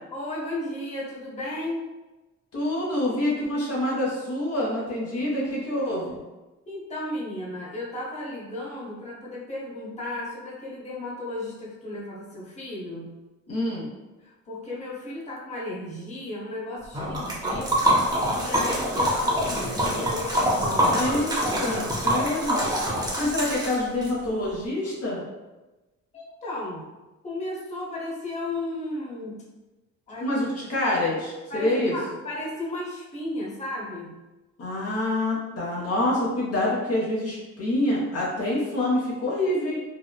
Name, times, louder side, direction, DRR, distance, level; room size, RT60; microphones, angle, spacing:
voice 1, 0.1-1.9 6.7-13.1 14.2-21.1 21.6-22.2 26.1-26.9 27.2-29.4 30.1-30.3 31.5-34.2, left 1 dB, 20° left, -5 dB, 0.8 m, -34 dB
voice 2, 2.5-6.2 13.5-13.9 20.9-22.6 23.2-25.2 30.2-32.0 34.6-39.8, left 1 dB, 55° left, -4 dB, 0.7 m, -26 dB
Liquid, 16.9-24.1, equal, 15° right, 0.6 m, -25 dB
3.0 x 2.0 x 2.2 m, 1.1 s
cardioid pair, 90°, 30 cm